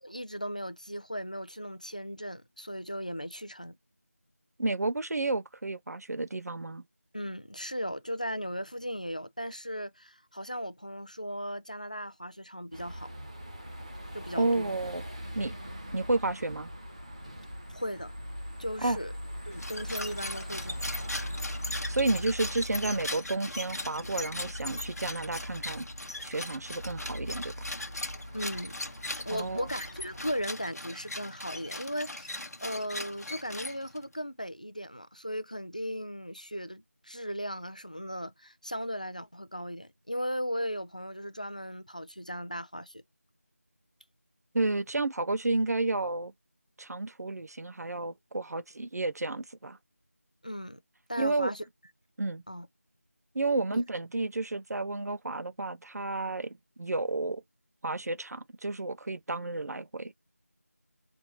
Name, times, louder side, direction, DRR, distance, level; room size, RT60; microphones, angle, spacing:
voice 1, 0.0-3.7 7.1-13.1 14.1-14.8 17.7-18.1 18.6-19.1 19.5-21.0 28.3-28.8 29.3-43.0 50.4-50.8 51.1-51.6 52.5-52.7 53.7-53.8, equal, 30° left, 0.3 m, -37 dB
voice 2, 4.6-6.8 14.4-15.0 15.4-15.5 15.9-16.7 18.8-19.0 21.9-25.9 26.2-27.7 29.3-29.7 44.5-46.3 46.8-49.8 51.2-51.5 52.2-52.4 53.3-57.4 57.8-60.1, right 2 dB, 80° right, 0.4 m, -31 dB
sound 1, 12.7-30.4, equal, 25° right, 0.6 m, -41 dB
sound 2, 19.5-34.1, left 2 dB, 80° left, 0.8 m, -39 dB
3.9 x 3.4 x 2.9 m
figure-of-eight pair, 175°, 8 cm